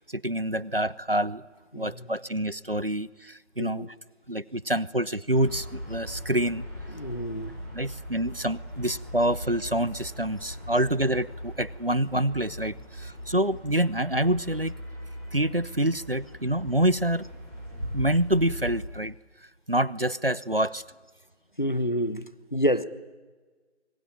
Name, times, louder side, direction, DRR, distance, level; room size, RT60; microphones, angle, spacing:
voice 1, 0.1-1.4 1.8-3.9 4.3-6.6 7.7-14.7 15.3-17.2 17.9-19.1 19.7-20.8, right 1 dB, 50° right, 22 dB, 0.8 m, -27 dB
voice 2, 1.7-2.1 3.6-3.9 6.9-7.5 21.6-22.8, equal, 40° left, 14 dB, 1.2 m, -28 dB
sound 1, 5.3-18.8, equal, 15° right, 5.4 m, -39 dB
29.0 x 22.0 x 8.8 m, 1.4 s
figure-of-eight pair, 180°, 36 cm